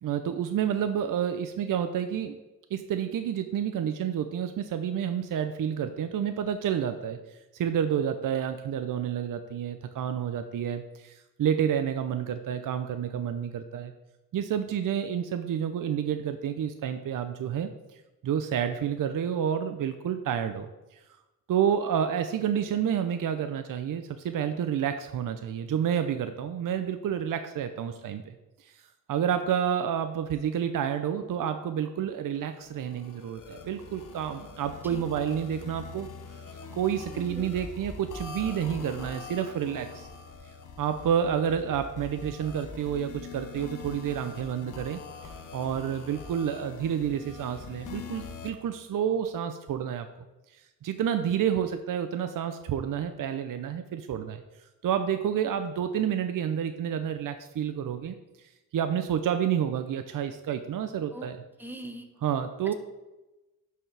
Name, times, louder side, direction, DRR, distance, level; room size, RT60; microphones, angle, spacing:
voice 1, 0.0-2.4 2.7-13.9 14.3-17.7 18.2-21.0 21.5-28.3 28.6-28.8 29.1-40.1 40.8-45.0 45.5-50.1 50.8-54.4 54.8-61.4 62.2-62.7, right 8 dB, 65° right, 8 dB, 0.6 m, -29 dB
sound 1, 32.5-48.5, left 5 dB, 60° left, 0.9 m, -43 dB
voice 2, 37.1-37.5 61.1-61.3 61.6-62.1, right 1 dB, 5° right, 6 dB, 1.0 m, -41 dB
11.5 x 4.7 x 3.3 m, 1.0 s
cardioid pair, 85°, 35 cm